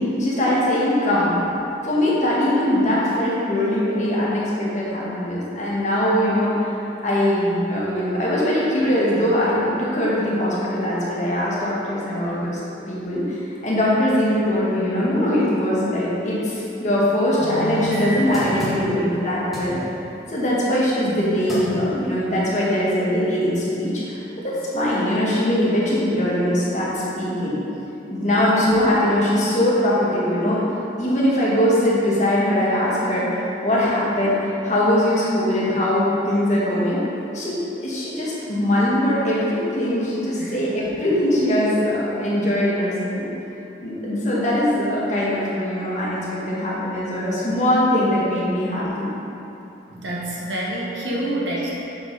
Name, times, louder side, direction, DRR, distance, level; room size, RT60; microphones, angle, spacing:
voice 1, 0.0-1.4 1.8-6.7 7.0-12.6 12.9-19.8 20.3-24.2 24.4-27.6 28.1-30.6 31.0-37.0 37.3-43.3 43.8-49.1, left 1 dB, 40° left, -7 dB, 1.6 m, -21 dB
sound 1, 17.4-19.2 19.5-19.8 21.1-21.2 21.5-21.8 22.3-22.4, left 1 dB, ahead, 1.7 m, -30 dB
voice 2, 40.4-40.7 49.9-51.7, right 1 dB, 85° right, -4 dB, 1.4 m, -27 dB
6.8 x 6.3 x 4.1 m, 2.9 s
head